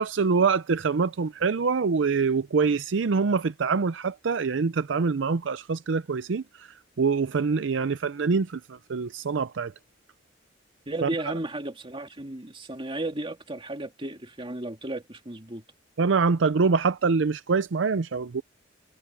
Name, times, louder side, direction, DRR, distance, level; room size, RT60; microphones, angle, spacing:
voice 1, 0.0-9.7 11.0-11.1 16.0-18.4, right 5 dB, 70° right, 0.5 m, -25 dB
voice 2, 10.9-15.6, right 1 dB, 30° right, 2.5 m, -34 dB
head